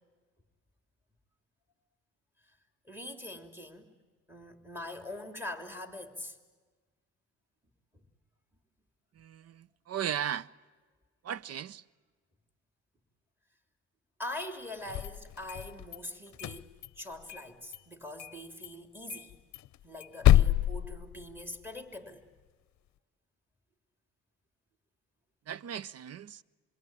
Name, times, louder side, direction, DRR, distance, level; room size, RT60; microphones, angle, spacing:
voice 1, 2.8-3.9 4.3-6.4 14.2-16.7 17.0-19.3 19.8-22.2, left 1 dB, 5° right, 3.4 m, -43 dB
voice 2, 9.1-10.5 11.2-11.8 25.5-26.4, right 9 dB, 55° right, 0.7 m, -36 dB
sound 1, 14.8-16.0 16.3-17.5 17.7-17.8 18.2-18.4 18.6-18.7 19.1-21.7, left 13 dB, 65° left, 0.7 m, -28 dB
27.0 x 22.5 x 9.1 m
cardioid pair, 90°, 30 cm